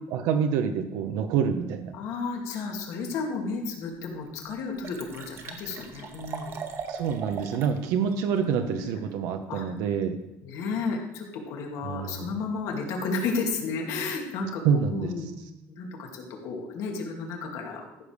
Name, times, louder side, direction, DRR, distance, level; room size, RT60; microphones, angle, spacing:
voice 1, 0.1-1.9 6.9-10.2 11.8-12.3 14.6-15.1, right 7 dB, 85° right, 6 dB, 1.0 m, -27 dB
voice 2, 1.9-6.6 8.4-9.0 9.5-9.7 10.4-14.6 14.9-15.3 15.7-18.0, left 4 dB, 75° left, 1 dB, 2.6 m, -33 dB
Liquid, 3.7-3.8 4.2-4.3 4.5-7.8 8.1-8.2, right 6 dB, 50° right, 1.5 m, -39 dB
14.0 x 5.0 x 6.6 m, 0.87 s
cardioid pair, 135°, 6 cm